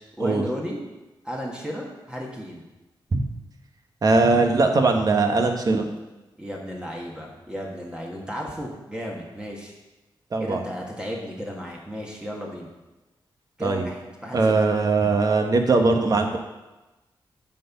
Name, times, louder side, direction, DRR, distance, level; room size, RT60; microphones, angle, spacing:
voice 1, 0.2-0.8 1.2-2.7 6.4-9.7 10.4-12.7 13.6-14.5, equal, 10° right, -2 dB, 1.5 m, -34 dB
voice 2, 4.0-5.9 10.3-10.6 13.6-13.9 14.3-16.4, right 3 dB, 45° right, 4 dB, 1.2 m, -20 dB
9.0 x 4.5 x 7.1 m, 1.1 s
wide cardioid pair, 105°, 9 cm